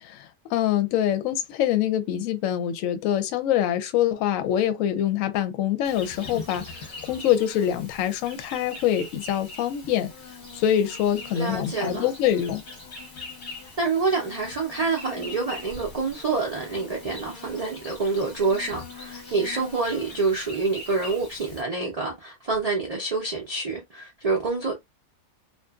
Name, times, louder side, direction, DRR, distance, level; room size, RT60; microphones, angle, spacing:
voice 1, 0.0-10.1 10.5-12.6, left 11 dB, 70° left, 0.9 m, -25 dB
Insect, 5.8-21.6, left 3 dB, 40° left, 0.9 m, -42 dB
voice 2, 11.3-12.1 13.8-24.7, right 4 dB, 45° right, 0.5 m, -27 dB
2.6 x 2.4 x 2.3 m
omnidirectional pair, 1.5 m